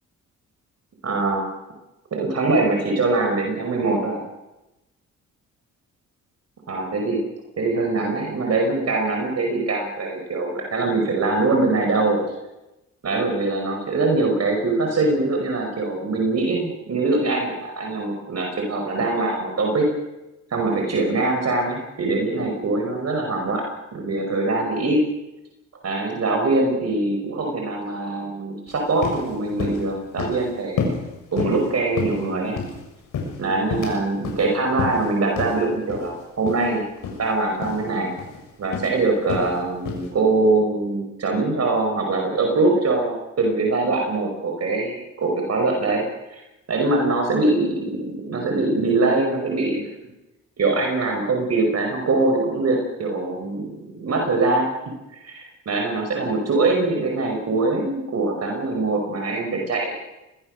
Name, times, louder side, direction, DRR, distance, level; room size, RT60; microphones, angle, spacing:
voice 1, 1.0-1.5 2.1-4.2 6.7-7.2 7.6-12.2 13.0-19.9 20.5-25.0 25.8-30.8 31.3-32.6 33.4-36.8 37.2-38.1 38.6-46.0 46.3-46.4 46.7-49.9 50.6-54.7 55.1-60.0, right 3 dB, 55° right, 2 dB, 5.6 m, -23 dB
sound 1, 28.7-28.8 29.0-29.3 29.6-29.9 30.2-30.5 30.8-31.0 31.4-31.7 32.0-32.8 33.1-34.0 34.2-34.4 34.8-35.1 35.4-35.5 35.9-36.1 36.5-36.7 37.0-37.2 37.6-37.8 38.2-38.4 38.7-38.9 39.3-39.5 39.9-40.1, left 5 dB, 75° left, 6.8 m, -28 dB
24.5 x 20.0 x 6.7 m, 0.98 s
cardioid pair, 75°, 31 cm